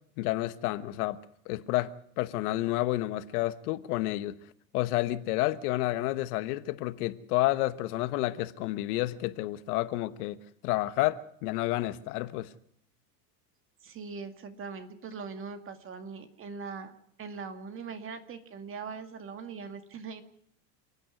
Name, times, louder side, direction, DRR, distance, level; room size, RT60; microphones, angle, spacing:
voice 1, 0.2-1.2 1.5-4.3 4.7-10.4 10.6-12.5, left 17 dB, 65° left, 1.2 m, -30 dB
voice 2, 13.8-16.9 17.2-20.2, right 5 dB, 25° right, 2.1 m, -41 dB
28.5 x 9.8 x 9.4 m
supercardioid pair, 140°, 49 cm